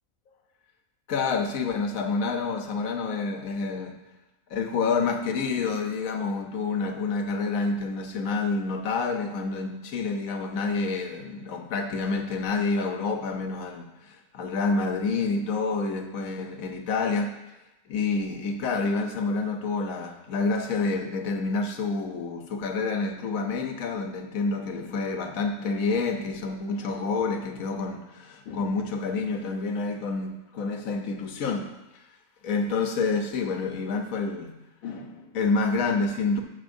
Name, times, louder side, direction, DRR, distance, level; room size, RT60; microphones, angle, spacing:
voice 1, 1.1-3.9 4.5-17.3 17.9-31.8 32.4-36.4, left 4 dB, 80° left, 5 dB, 1.2 m, -28 dB
14.0 x 5.8 x 2.6 m, 0.99 s
omnidirectional pair, 1.4 m